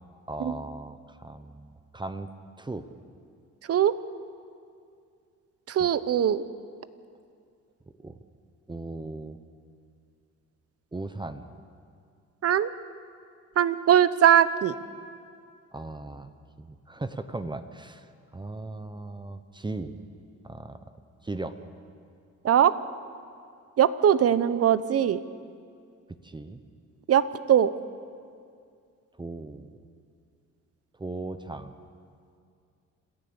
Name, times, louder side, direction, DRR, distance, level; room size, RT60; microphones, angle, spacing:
voice 1, 0.3-2.3 2.6-2.9 5.8-5.9 8.0-8.2 8.7-9.4 10.9-11.5 15.7-16.3 16.6-20.0 20.4-20.9 21.2-21.6 26.2-26.6 29.2-29.8 31.0-31.8, right 2 dB, 15° right, 10 dB, 0.9 m, -37 dB
voice 2, 5.7-6.4 12.4-12.7 13.6-14.7 22.4-22.7 23.8-25.2 27.1-27.7, right 9 dB, 50° right, 15 dB, 0.8 m, -21 dB
27.0 x 14.0 x 7.0 m, 2.3 s
cardioid pair, 90°, 30 cm